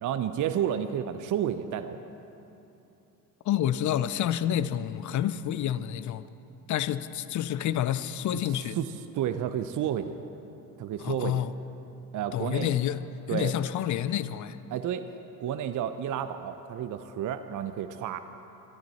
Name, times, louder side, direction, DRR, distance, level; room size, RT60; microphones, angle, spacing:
voice 1, 0.0-2.0 8.8-10.2 10.8-11.4 12.1-12.7 13.3-13.5 14.7-15.0 15.4-18.2, right 9 dB, 40° right, 0.8 m, -31 dB
voice 2, 3.4-6.3 6.7-8.8 11.0-11.5 12.3-13.0 13.3-14.6, left 11 dB, 40° left, 0.7 m, -28 dB
23.0 x 13.5 x 4.4 m
figure-of-eight pair, 60°, 48 cm